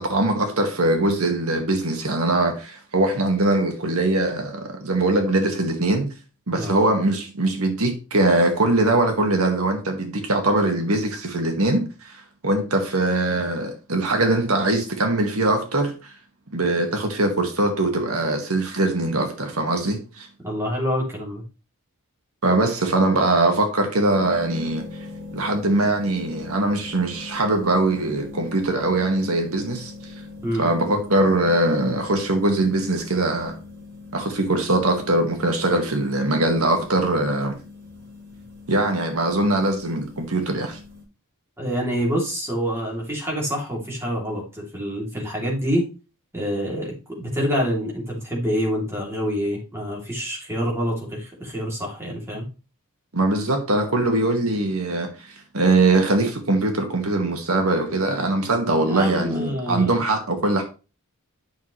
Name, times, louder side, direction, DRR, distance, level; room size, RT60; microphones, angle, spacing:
voice 1, 0.0-6.1 6.5-16.1 16.5-20.3 22.4-24.8 25.3-29.9 30.6-33.6 34.1-37.6 38.7-40.8 53.1-60.6, right 2 dB, 75° right, 1.8 m, -22 dB
voice 2, 6.6-6.9 20.4-21.4 30.4-30.6 41.6-45.9 46.3-52.5 58.9-59.9, equal, 10° right, 2.9 m, -26 dB
sound 1, 24.1-41.0, left 3 dB, 45° right, 5.3 m, -41 dB
11.0 x 5.9 x 3.2 m
head